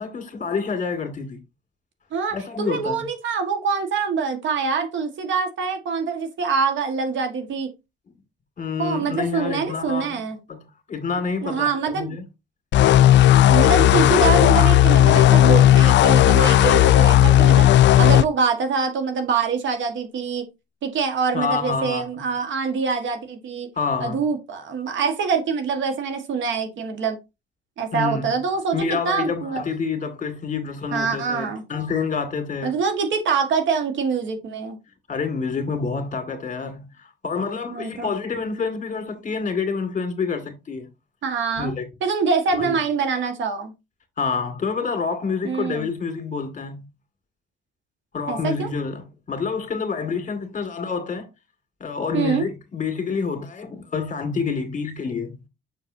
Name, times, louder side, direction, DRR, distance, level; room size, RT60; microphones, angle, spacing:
voice 1, 0.0-1.4 2.3-3.1 8.6-10.2 10.5-12.2 13.7-14.1 21.3-22.1 23.8-24.2 27.9-28.4 28.7-32.7 35.1-40.9 41.6-41.9 42.5-42.8 44.2-46.9 48.1-51.3 51.8-55.4, left 5 dB, 40° left, 2.1 m, -28 dB
voice 2, 2.1-7.7 8.8-10.4 11.4-12.1 13.5-17.7 18.0-20.4 20.8-23.7 24.0-27.2 27.8-29.6 30.9-31.6 32.6-34.8 37.7-38.1 41.2-41.7 42.0-43.7 45.4-45.9 48.3-48.7 52.1-52.5, right 5 dB, 70° right, 1.6 m, -24 dB
sound 1, 12.7-18.2, left 12 dB, 65° left, 0.4 m, -14 dB
6.5 x 6.2 x 2.7 m
cardioid pair, 90°, 20 cm